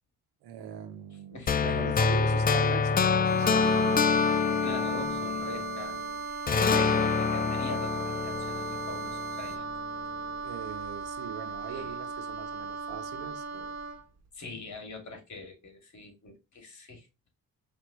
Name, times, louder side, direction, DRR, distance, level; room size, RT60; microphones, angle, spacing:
voice 1, 0.4-4.0 6.5-7.1 10.4-13.7, right 9 dB, 85° right, 0.9 m, -41 dB
voice 2, 1.3-1.7 4.6-6.0 6.7-9.6 11.7-12.0 14.3-17.1, left 3 dB, 50° left, 2.4 m, -43 dB
sound 1, 1.5-6.0 6.5-9.5, left 5 dB, 25° left, 0.4 m, -26 dB
sound 2, 3.2-9.6, right 3 dB, 25° right, 0.9 m, -49 dB
Wind instrument woodwind instrument, 3.4-14.0, right 5 dB, 45° right, 1.5 m, -37 dB
5.2 x 3.1 x 3.0 m
cardioid pair, 75°, 37 cm